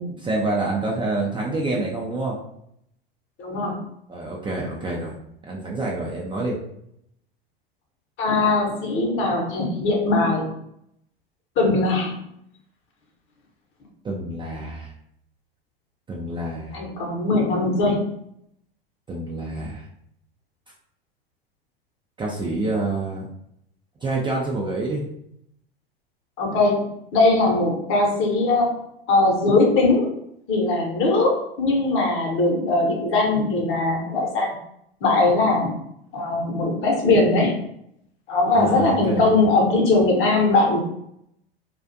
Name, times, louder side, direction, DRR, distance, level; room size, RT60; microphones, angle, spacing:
voice 1, 0.2-2.4 4.1-5.1 5.5-6.6 14.0-14.9 16.1-16.8 19.1-19.9 22.2-23.3 24.0-25.0 38.5-39.3, right 2 dB, 15° right, -3 dB, 0.4 m, -27 dB
voice 2, 3.4-3.8 8.2-10.5 11.6-12.1 16.7-18.0 26.4-26.8 27.1-28.8 29.1-30.1 30.5-34.6 35.0-35.7 36.1-37.6 38.3-40.8, left 2 dB, 45° left, 0 dB, 0.9 m, -20 dB
2.4 x 2.3 x 2.6 m, 0.75 s
hypercardioid pair, 90°, 30 cm